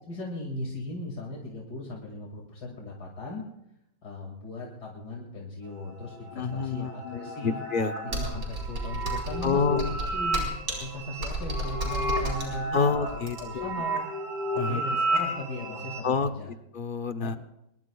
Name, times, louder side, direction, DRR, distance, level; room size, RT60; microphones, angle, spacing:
voice 1, 0.1-3.4 4.0-7.6 8.0-10.5 10.8-12.8 13.1-14.0 14.6-16.5 17.2-17.4, left 2 dB, 75° left, -2 dB, 2.9 m, -38 dB
sound 1, 5.7-16.0, right 1 dB, 65° right, 4.8 m, -33 dB
voice 2, 6.3-8.2 9.4-9.9 12.7-13.7 14.6-14.8 16.0-16.3 16.7-17.4, left 5 dB, 45° left, 8 dB, 0.7 m, -28 dB
Computer keyboard, 8.1-13.7, right 2 dB, 90° right, 4.7 m, -33 dB
23.5 x 22.0 x 2.3 m, 0.82 s
omnidirectional pair, 1.8 m